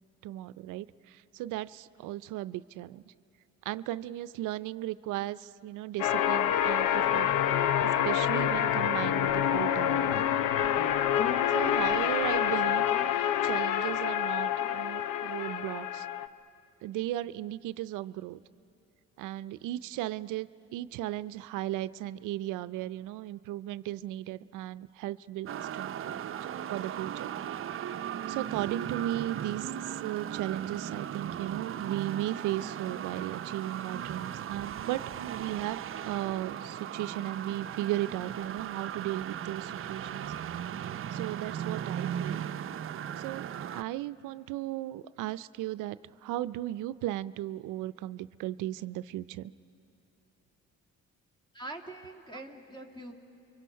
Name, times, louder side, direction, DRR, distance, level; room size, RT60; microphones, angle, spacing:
voice 1, 0.2-3.1 3.6-7.3 8.0-10.2 11.5-16.1 16.8-18.4 19.2-26.4 26.7-27.3 28.3-40.5 41.1-42.4 43.2-49.5, right 14 dB, 90° right, 15 dB, 0.5 m, -36 dB
sound 1, 6.0-16.3, left 10 dB, 85° left, 0.7 m, -27 dB
sound 2, 25.5-43.8, right 9 dB, 45° right, 0.6 m, -37 dB
voice 2, 51.5-53.1, right 2 dB, 15° left, 3 dB, 2.4 m, -43 dB
30.0 x 24.0 x 5.7 m, 2.9 s
cardioid pair, 90°, 30 cm